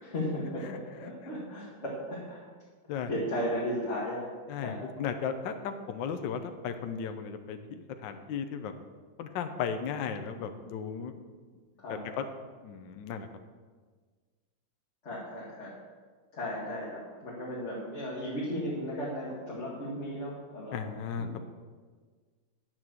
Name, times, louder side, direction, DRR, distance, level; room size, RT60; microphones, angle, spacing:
voice 1, 0.0-2.5 3.1-4.3 4.6-4.8 11.8-12.0 15.0-15.7 16.3-20.8 21.2-21.4, equal, 35° left, -6 dB, 2.1 m, -35 dB
voice 2, 4.5-8.7 9.2-11.1 11.9-12.2 12.6-13.3 20.7-21.4, left 7 dB, 70° left, 7 dB, 1.4 m, -35 dB
10.0 x 7.3 x 6.3 m, 1.5 s
omnidirectional pair, 2.2 m